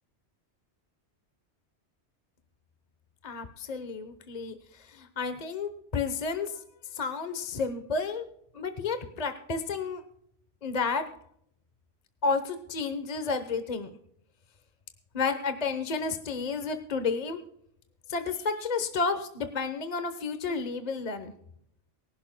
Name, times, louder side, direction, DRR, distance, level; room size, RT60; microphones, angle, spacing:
voice 1, 3.2-6.6 6.9-8.2 8.5-10.0 10.6-11.0 12.2-13.9 15.1-17.4 18.1-21.3, left 4 dB, 40° left, 8 dB, 1.0 m, -31 dB
24.0 x 11.0 x 2.2 m, 0.71 s
omnidirectional pair, 1.1 m